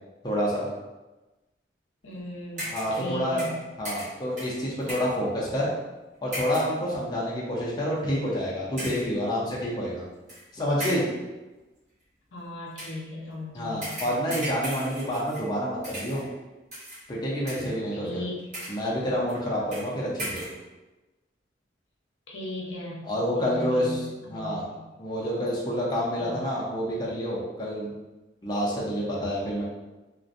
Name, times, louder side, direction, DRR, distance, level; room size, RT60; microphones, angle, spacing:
voice 1, 0.2-0.7 2.6-3.5 3.8-5.7 6.2-10.0 10.5-11.1 13.5-16.2 17.1-18.2 18.7-20.4 23.0-24.0 24.3-24.6 25.0-27.9 28.4-29.6, equal, 25° left, -6 dB, 0.5 m, -28 dB
voice 2, 2.0-3.5 12.3-14.1 17.9-18.5 22.3-23.0 23.3-24.8 26.2-26.4, left 1 dB, 90° left, -3 dB, 0.6 m, -37 dB
sound 1, 2.6-3.1 3.4-5.2 6.3-6.8 7.5-7.6 8.8-9.2 10.3-10.4 10.8-11.2 12.7-13.0 13.8-15.6 15.8-16.3 16.7-17.0 17.5-17.9 18.4-18.9 19.3-19.4 19.7-19.9 20.2-20.6, right 1 dB, 40° right, 1.0 m, -37 dB
2.4 x 2.1 x 2.5 m, 1.1 s
head